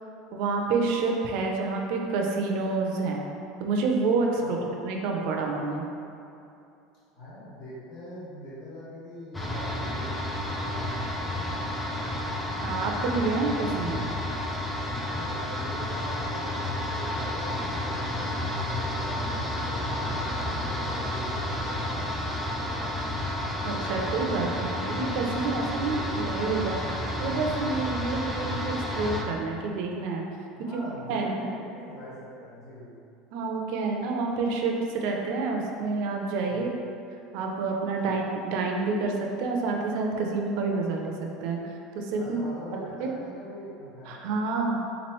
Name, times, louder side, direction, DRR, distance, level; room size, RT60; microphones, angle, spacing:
voice 1, 0.3-3.3 3.6-4.4 4.8-5.9 12.6-14.1 23.6-30.2 30.7-30.8 31.1-31.4 33.3-36.7 37.3-41.1 41.4-41.6 41.9-42.4 43.0-43.1 44.1-44.8, right 3 dB, 55° right, 1 dB, 0.4 m, -28 dB
voice 2, 7.1-11.8 14.9-22.0 25.8-26.2 30.5-32.9 36.5-36.6 38.0-38.1 42.2-44.2, equal, 65° left, -10 dB, 1.4 m, -43 dB
sound 1, 9.3-29.2, left 1 dB, 10° left, 0.3 m, -31 dB
3.7 x 3.0 x 3.0 m, 2.7 s
cardioid pair, 170°, 0 cm